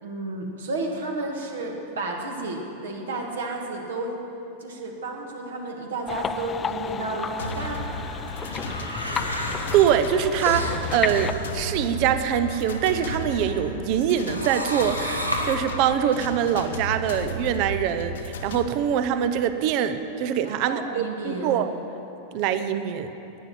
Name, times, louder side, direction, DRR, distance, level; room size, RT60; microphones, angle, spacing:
voice 1, 0.0-4.2 4.6-7.8 20.4-21.6, right 2 dB, 65° right, 1 dB, 1.9 m, -32 dB
sound 1, 6.1-11.3, left 7 dB, 20° left, 0.3 m, -33 dB
sound 2, 7.4-18.7, left 1 dB, 65° left, 1.1 m, -35 dB
sound 3, 7.4-13.7 14.1-15.5, equal, 90° right, 1.3 m, -33 dB
voice 2, 9.7-21.7 22.3-23.1, right 9 dB, 45° right, 10 dB, 0.7 m, -24 dB
12.0 x 9.8 x 9.2 m, 3.0 s
figure-of-eight pair, 90°, 0 cm